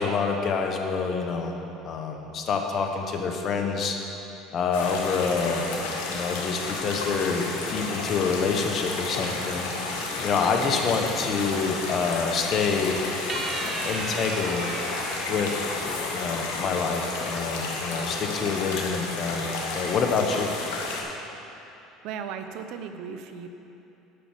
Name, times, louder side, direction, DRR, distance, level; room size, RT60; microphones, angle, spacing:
voice 1, 0.0-1.5 1.8-4.0 4.5-5.7 6.1-9.7 10.2-13.1 13.8-14.7 15.3-15.7 16.1-20.5, left 5 dB, 45° left, 3 dB, 1.2 m, -27 dB
sound 1, 4.7-21.0, left 3 dB, 80° left, 1.7 m, -32 dB
sound 2, 13.3-16.8, right 3 dB, 30° right, 0.7 m, -36 dB
voice 2, 22.0-23.5, right 7 dB, 65° right, 8 dB, 0.8 m, -36 dB
10.0 x 5.9 x 7.4 m, 2.9 s
supercardioid pair, 95°, 0 cm